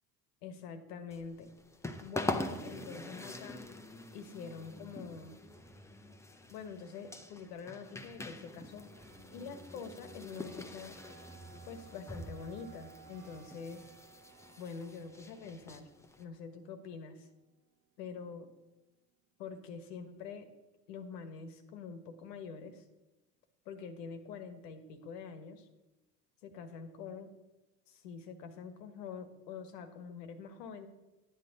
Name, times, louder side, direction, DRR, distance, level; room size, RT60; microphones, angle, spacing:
voice 1, 0.4-1.5 2.0-3.7 4.1-5.4 6.5-8.9 9.3-10.9 11.6-13.9 14.6-15.9 16.2-17.3 18.0-18.5 19.4-20.5 20.9-22.8 23.6-25.7 26.4-27.3 27.9-30.9, left 5 dB, 70° left, 9 dB, 1.3 m, -45 dB
sound 1, 1.1-16.2, left 2 dB, 5° left, 0.8 m, -44 dB
sound 2, 8.3-19.0 19.5-19.6, right 8 dB, 75° right, 1.4 m, -62 dB
11.0 x 9.0 x 4.0 m, 1.0 s
hypercardioid pair, 70°, 50 cm